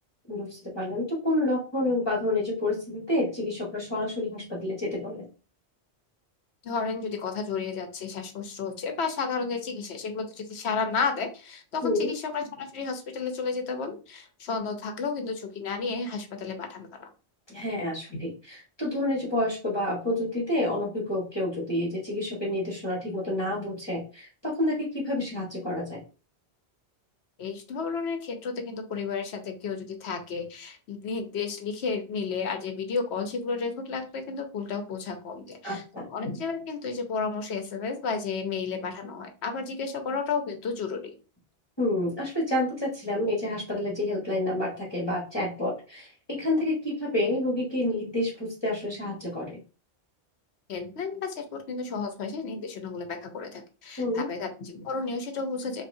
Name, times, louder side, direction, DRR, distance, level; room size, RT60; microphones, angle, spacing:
voice 1, 0.3-5.3 11.8-12.1 17.5-26.0 35.6-36.1 41.8-49.6 54.0-54.3, left 1 dB, 25° left, -4 dB, 1.5 m, -29 dB
voice 2, 6.6-17.1 18.1-18.2 27.4-41.1 50.7-55.9, left 5 dB, 75° left, 6 dB, 1.1 m, -32 dB
5.5 x 2.7 x 2.7 m, 0.35 s
omnidirectional pair, 1.1 m